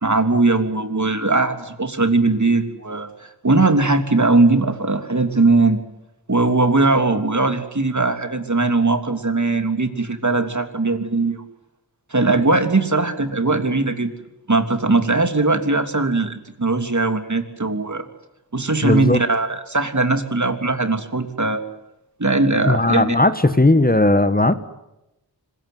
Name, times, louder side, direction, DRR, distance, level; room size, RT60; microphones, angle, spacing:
voice 1, 0.0-3.1 3.4-5.8 6.3-11.4 12.1-14.1 14.5-18.1 18.5-21.6 22.2-23.2, right 3 dB, 45° right, 7 dB, 3.2 m, -19 dB
voice 2, 18.8-19.2 22.6-24.6, left 2 dB, 20° left, 11 dB, 1.4 m, -16 dB
25.5 x 21.5 x 9.4 m, 0.90 s
wide cardioid pair, 65°, 42 cm